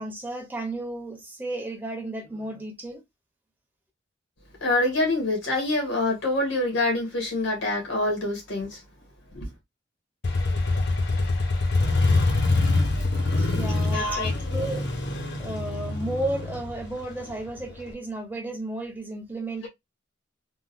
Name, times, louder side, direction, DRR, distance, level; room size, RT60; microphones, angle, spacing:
voice 1, 0.0-3.0 13.4-14.9 15.4-19.7, right 2 dB, 10° right, 0.9 m, -33 dB
voice 2, 4.6-8.8 9.3-9.5 13.9-14.3, left 2 dB, 80° left, 1.7 m, -25 dB
Motorcycle, 10.2-17.9, left 2 dB, 60° left, 1.0 m, -25 dB
3.7 x 2.5 x 2.5 m
head